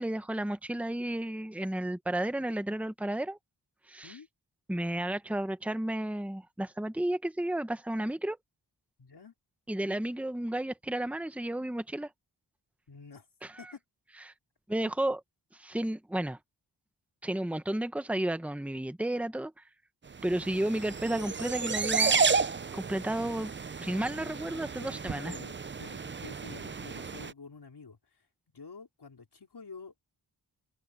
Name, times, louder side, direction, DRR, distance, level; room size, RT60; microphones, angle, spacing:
voice 1, 0.0-3.4 3.9-4.1 4.7-8.4 9.7-12.1 13.4-13.5 14.3-14.4 14.7-15.2 15.5-16.4 17.2-19.5 20.2-22.2 22.7-23.5 23.8-25.3, right 1 dB, 5° right, 1.2 m, -32 dB
voice 2, 9.0-9.3 12.9-13.3 13.6-13.8 24.8-28.3 28.5-30.0, left 5 dB, 65° left, 4.4 m, -49 dB
sound 1, 20.2-27.3, right 5 dB, 30° right, 0.5 m, -32 dB
wide cardioid pair, 85°, 43 cm